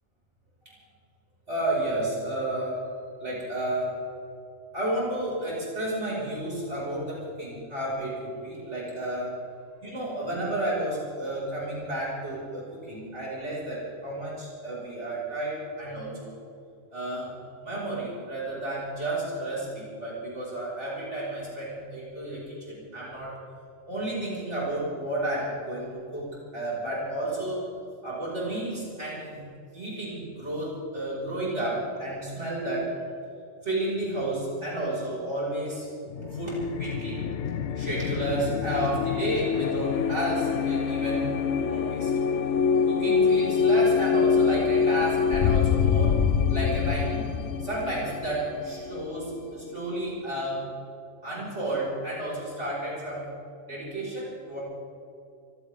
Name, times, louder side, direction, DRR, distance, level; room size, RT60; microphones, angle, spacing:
voice 1, 1.5-2.8 3.2-4.0 4.7-9.4 9.8-16.3 16.9-17.3 17.6-23.3 23.9-27.6 28.0-29.4 29.7-32.9 33.6-35.9 36.3-37.3 37.8-41.3 41.6-42.1 42.9-46.2 46.5-50.7 51.2-53.2 53.7-54.6, right 1 dB, 55° right, -6 dB, 5.7 m, -31 dB
sound 1, 36.1-49.6, left 6 dB, 65° left, 1.0 m, -25 dB
25.5 x 16.0 x 3.6 m, 2.5 s
omnidirectional pair, 1.4 m